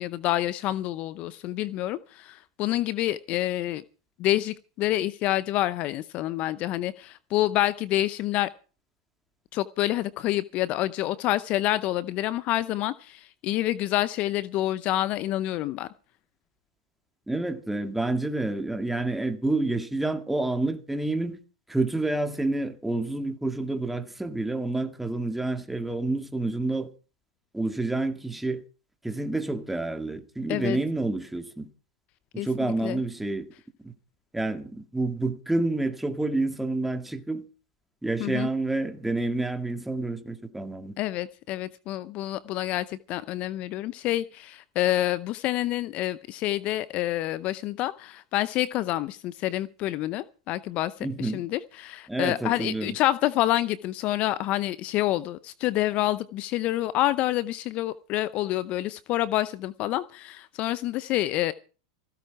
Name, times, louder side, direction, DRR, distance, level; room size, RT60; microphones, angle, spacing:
voice 1, 0.0-3.8 4.2-8.5 9.5-15.9 30.5-30.8 32.4-33.0 38.2-38.5 41.0-50.9 51.2-61.5, left 15 dB, 45° left, 0.6 m, -27 dB
voice 2, 17.3-21.4 21.7-26.9 27.5-28.6 29.0-31.7 32.3-33.5 33.8-33.9 34.3-37.4 38.0-40.9 51.0-51.4 52.1-53.0, right 2 dB, 5° right, 2.0 m, -28 dB
16.0 x 14.0 x 4.7 m
hypercardioid pair, 110°, 3 cm